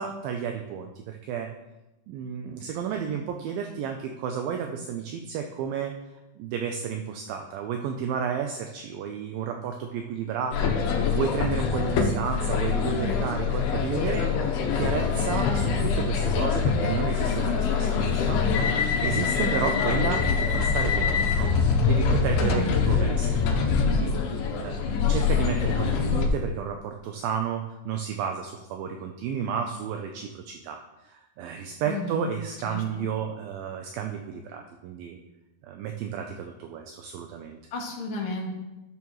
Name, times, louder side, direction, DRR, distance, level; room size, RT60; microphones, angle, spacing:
voice 1, 0.0-1.5 2.1-5.9 6.4-14.3 14.7-21.5 21.9-24.1 24.6-35.2 35.6-37.6, right 7 dB, 80° right, 4 dB, 2.3 m, -32 dB
sound 1, 10.5-26.3, left 5 dB, 80° left, 2.8 m, -24 dB
voice 2, 12.9-13.3 22.4-22.7 31.8-32.2 32.6-32.8 37.7-38.5, left 2 dB, 55° left, -1 dB, 1.5 m, -32 dB
12.0 x 7.3 x 3.1 m, 1.0 s
omnidirectional pair, 4.5 m